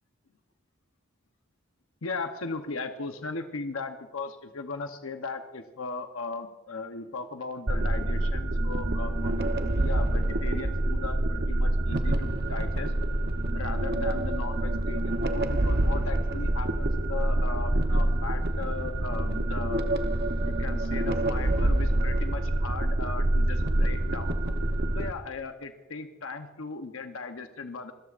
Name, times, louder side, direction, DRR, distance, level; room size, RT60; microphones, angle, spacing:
voice 1, 2.0-12.9 13.5-19.8 20.5-24.4 24.9-27.9, left 4 dB, 85° left, 6 dB, 0.9 m, -37 dB
sound 1, 7.7-25.1, right 1 dB, 50° right, 0.9 m, -26 dB
26.5 x 14.0 x 2.5 m, 1.2 s
head